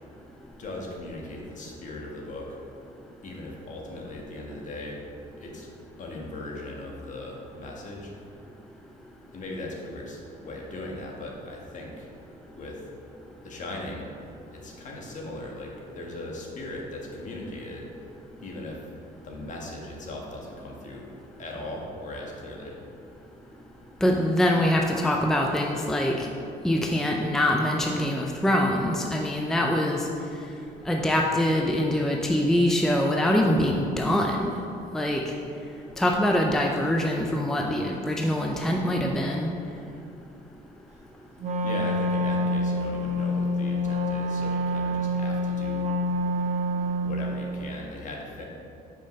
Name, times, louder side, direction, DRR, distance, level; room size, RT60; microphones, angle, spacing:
voice 1, 0.6-2.5 3.2-5.0 5.4-5.7 6.0-8.1 9.3-12.1 12.5-12.8 13.4-14.1 14.5-17.8 18.4-18.9 19.2-21.1 21.4-22.8 41.6-45.9 47.0-48.5, left 1 dB, 45° left, -1 dB, 1.4 m, -38 dB
voice 2, 24.0-26.3 26.6-30.1 30.9-34.5 34.9-35.2 36.0-39.5, left 1 dB, 5° left, 0 dB, 0.5 m, -24 dB
Wind instrument woodwind instrument, 41.4-47.3, left 1 dB, 45° right, 0.7 m, -27 dB
5.6 x 5.1 x 5.2 m, 2.6 s
cardioid pair, 110°, 17 cm